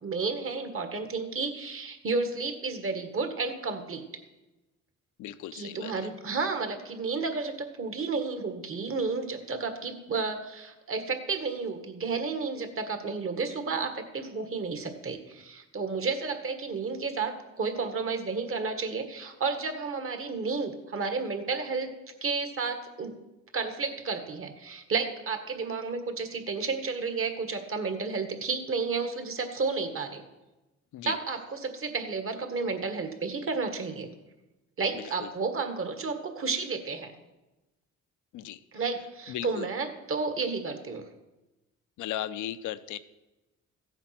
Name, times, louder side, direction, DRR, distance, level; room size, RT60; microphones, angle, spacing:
voice 1, 0.0-4.0 5.5-21.9 22.2-23.1 23.5-30.2 31.0-34.1 34.8-37.1 38.7-41.0, right 4 dB, 45° right, 7 dB, 1.8 m, -32 dB
voice 2, 5.2-5.9 30.9-31.2 34.9-35.1 38.3-38.6 39.3-39.7 42.0-43.0, left 12 dB, 85° left, 13 dB, 0.7 m, -36 dB
14.5 x 8.0 x 6.0 m, 1.1 s
cardioid pair, 90°, 30 cm